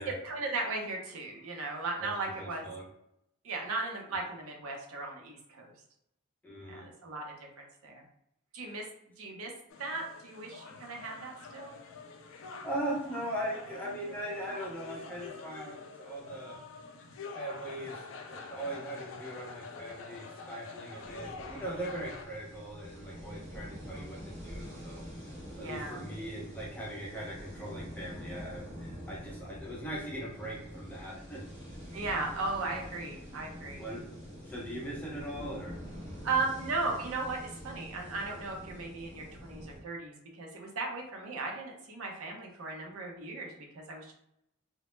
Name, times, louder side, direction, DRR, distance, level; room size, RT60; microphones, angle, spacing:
voice 1, 0.0-2.7 3.4-5.7 6.7-7.2 7.6-8.0 8.5-8.9 9.2-9.5 9.8-11.7 23.7-24.2 25.6-26.1 31.9-33.8 36.2-44.1, right 3 dB, 80° right, 1 dB, 0.6 m, -37 dB
voice 2, 2.4-2.8 6.4-6.9 12.6-16.6 17.3-25.1 25.6-31.4 33.8-34.0 34.4-35.8, right 1 dB, 5° left, -4 dB, 0.5 m, -40 dB
sound 1, 9.7-22.3, left 4 dB, 65° left, 0.3 m, -47 dB
sound 2, 21.0-39.8, equal, 30° right, 0.9 m, -46 dB
2.0 x 2.0 x 3.0 m, 0.77 s
head